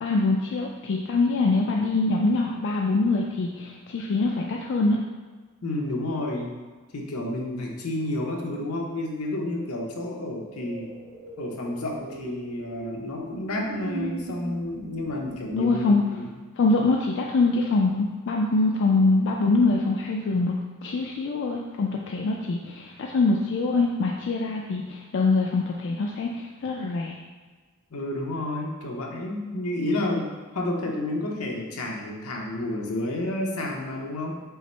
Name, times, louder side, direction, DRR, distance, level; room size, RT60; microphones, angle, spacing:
voice 1, 0.0-5.0 15.5-16.0 16.6-20.6 20.8-27.1, left 3 dB, 55° left, 0 dB, 0.3 m, -24 dB
voice 2, 5.6-6.6 6.9-10.9 11.4-16.3 27.9-34.4, left 1 dB, 80° left, 0 dB, 0.8 m, -30 dB
sound 1, 10.6-15.5, right 2 dB, 70° right, 1.1 m, -39 dB
5.5 x 2.0 x 4.3 m, 1.4 s
head